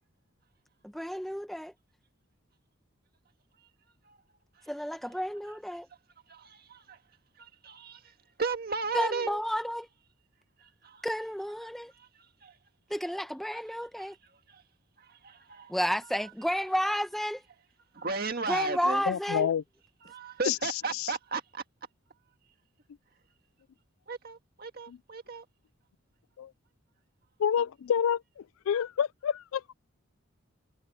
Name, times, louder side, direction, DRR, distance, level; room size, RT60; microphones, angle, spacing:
voice 1, 0.8-1.7 4.7-5.9 8.9-9.9 11.0-11.9 12.9-14.1 15.7-17.4 18.5-19.5, equal, ahead, 1.1 m, -31 dB
voice 2, 6.3-7.0 7.4-9.4 10.6-11.1 11.9-12.6 13.5-13.6 14.0-14.2 14.5-14.6 15.0-15.7 16.0-16.3 17.9-19.0 20.0-21.6 24.1-25.5, right 4 dB, 45° right, 1.8 m, -36 dB
voice 3, 19.1-19.6 20.5-20.6 26.4-26.5 27.4-29.7, left 8 dB, 85° left, 0.3 m, -28 dB
head